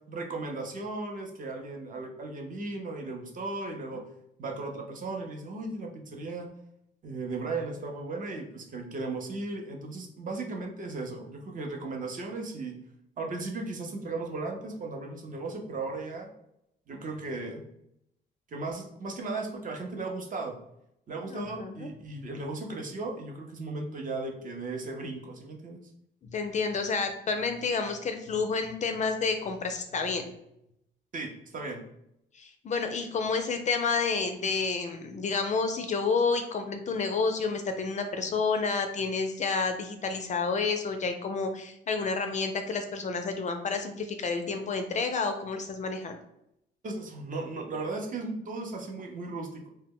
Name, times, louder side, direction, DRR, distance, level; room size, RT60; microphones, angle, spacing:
voice 1, 0.1-4.0 4.4-6.5 7.0-12.7 13.2-16.3 16.9-17.6 18.5-20.5 21.1-25.9 31.1-31.8 46.8-49.7, right 3 dB, 40° right, 2 dB, 0.6 m, -36 dB
voice 2, 21.3-21.9 26.3-30.2 32.3-46.2, left 4 dB, 40° left, 6 dB, 0.4 m, -30 dB
2.1 x 2.0 x 3.6 m, 0.79 s
cardioid pair, 90°, 20 cm